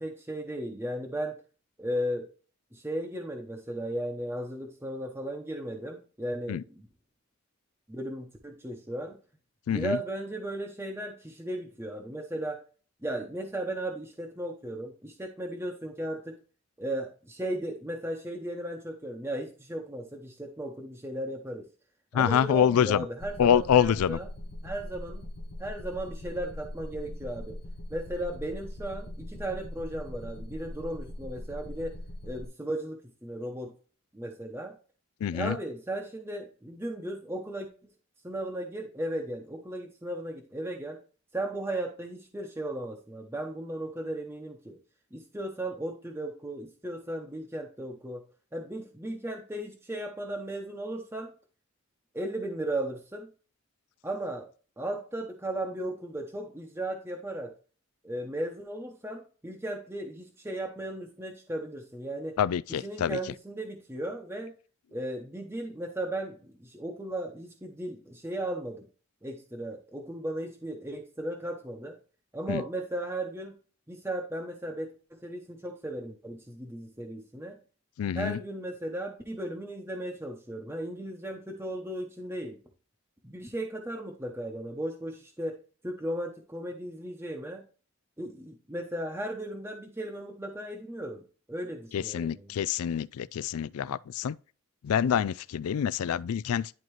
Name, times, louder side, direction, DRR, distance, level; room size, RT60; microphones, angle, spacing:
voice 1, 0.0-1.4 1.8-2.3 2.7-6.8 7.9-9.2 9.7-12.6 13.0-16.4 16.8-21.7 22.1-24.3 24.6-25.3 25.6-27.6 27.9-32.0 32.2-33.7 34.1-34.8 35.3-37.7 38.2-41.0 41.3-44.8 45.1-48.2 48.5-51.3 52.1-53.3 54.0-54.5 54.8-57.5 58.0-62.4 62.7-64.5 64.9-68.9 69.2-72.0 72.3-73.6 73.9-77.6 78.1-82.6 83.2-85.6 85.8-87.6 88.2-92.6, right 1 dB, 10° right, 0.8 m, -36 dB
voice 2, 9.7-10.0 22.1-23.1 23.4-24.2 35.2-35.6 62.4-63.2 72.5-72.6 78.0-78.4 91.9-94.4 94.8-96.7, left 8 dB, 90° left, 0.3 m, -26 dB
sound 1, 23.2-32.5, left 1 dB, 50° left, 0.7 m, -41 dB
10.5 x 3.9 x 3.1 m
head